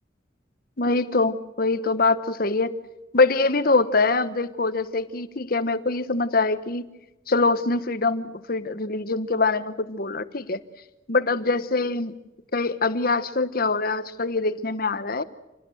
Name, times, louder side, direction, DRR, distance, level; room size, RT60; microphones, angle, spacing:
voice 1, 0.8-2.8 3.1-6.9 7.3-10.6 11.1-12.2 12.5-15.2, left 3 dB, 50° left, 13 dB, 1.1 m, -24 dB
27.5 x 18.5 x 7.8 m, 0.98 s
head